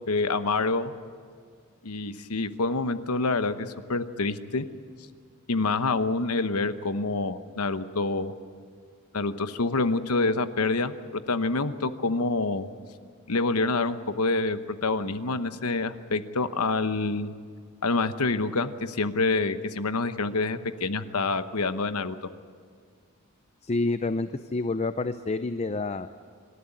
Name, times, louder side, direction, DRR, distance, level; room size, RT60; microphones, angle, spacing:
voice 1, 0.1-0.9 1.8-4.7 5.5-8.3 9.1-12.7 13.3-17.3 17.8-22.1, left 3 dB, 90° left, 11 dB, 1.0 m, -27 dB
voice 2, 23.6-26.1, left 3 dB, 30° left, 11 dB, 0.5 m, -28 dB
26.0 x 13.0 x 9.9 m, 2.1 s
head